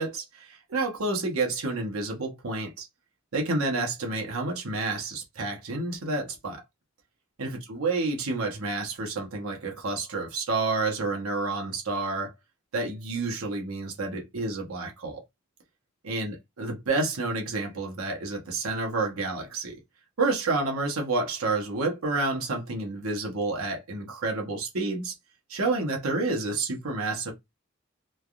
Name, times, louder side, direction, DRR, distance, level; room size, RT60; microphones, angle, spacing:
voice 1, 0.0-2.9 3.3-6.6 7.4-12.3 12.7-15.2 16.0-19.8 20.2-25.1 25.5-27.3, right 3 dB, 90° right, 0.9 m, -29 dB
3.3 x 2.3 x 2.3 m
head